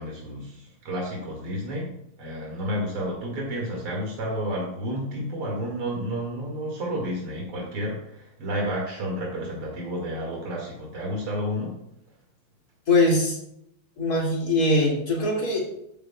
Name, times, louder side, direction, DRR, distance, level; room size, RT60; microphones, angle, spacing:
voice 1, 0.0-1.9 2.2-11.7, equal, 85° right, -2 dB, 3.1 m, -31 dB
voice 2, 12.9-13.4 14.0-15.7, left 2 dB, 45° left, -3 dB, 3.1 m, -22 dB
12.0 x 10.0 x 2.4 m, 0.76 s
omnidirectional pair, 2.4 m